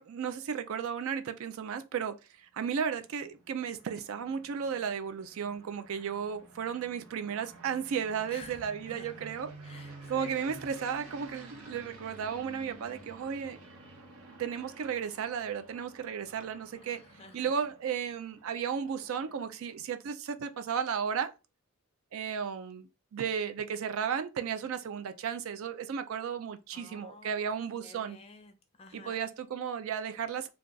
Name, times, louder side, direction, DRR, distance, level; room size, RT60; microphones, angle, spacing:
voice 1, 0.0-9.5 10.1-13.6 14.3-17.0 17.3-21.3 22.1-28.2 28.9-30.5, right 7 dB, 65° right, 0.3 m, -34 dB
sound 1, 2.8-19.8, right 2 dB, 85° right, 0.9 m, -52 dB
voice 2, 8.3-9.1 9.6-10.3 16.9-17.5 26.7-27.5 27.8-28.5 28.8-29.2, left 3 dB, 25° left, 0.4 m, -51 dB
2.3 x 2.3 x 3.7 m
head